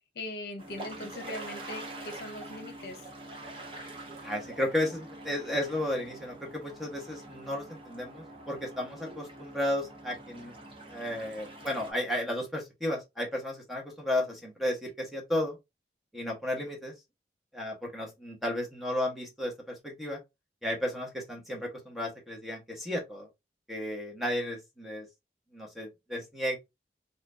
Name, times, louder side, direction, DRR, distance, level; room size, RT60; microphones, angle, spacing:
voice 1, 0.1-3.0, left 1 dB, 70° left, 0.8 m, -40 dB
sound 1, 0.6-11.9, right 2 dB, 30° right, 0.9 m, -45 dB
voice 2, 4.2-10.5 10.9-15.6 16.1-16.9 17.5-20.2 20.6-23.3 23.7-25.1 25.5-26.6, left 1 dB, ahead, 1.2 m, -33 dB
4.2 x 2.7 x 2.6 m
head